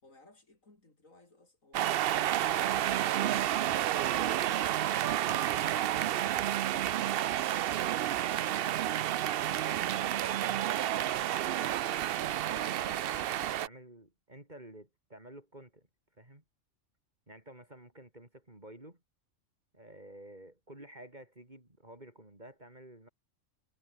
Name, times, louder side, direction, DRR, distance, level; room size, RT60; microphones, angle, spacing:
voice 1, 0.0-3.4 3.7-4.6 9.9-10.7, left 2 dB, 85° left, 5.4 m, -61 dB
sound 1, 1.7-13.7, right 12 dB, 60° right, 0.6 m, -30 dB
voice 2, 11.1-15.9 16.2-16.4 17.3-19.0 19.7-23.1, right 1 dB, 35° right, 5.2 m, -52 dB
omnidirectional pair, 1.3 m